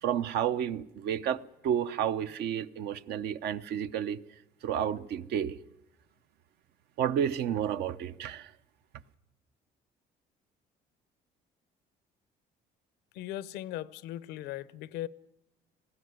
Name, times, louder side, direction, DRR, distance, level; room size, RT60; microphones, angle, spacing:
voice 1, 0.0-4.2 4.6-5.6 7.0-8.5, right 9 dB, 75° right, 0.8 m, -31 dB
voice 2, 13.1-15.1, left 13 dB, 90° left, 0.7 m, -38 dB
19.5 x 15.5 x 9.5 m
cardioid pair, 110°, 17 cm